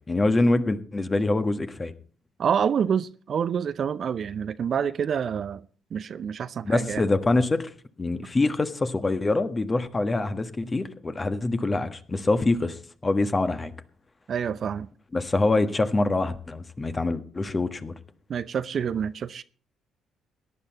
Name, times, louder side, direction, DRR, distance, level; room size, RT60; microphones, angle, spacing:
voice 1, 0.1-1.9 6.6-7.7 8.0-13.7 15.1-17.9, left 2 dB, 25° left, 1.4 m, -25 dB
voice 2, 2.4-5.7 5.9-7.0 14.3-14.9 18.3-19.4, right 7 dB, 50° right, 0.6 m, -27 dB
18.0 x 10.5 x 4.2 m
hypercardioid pair, 45°, 0 cm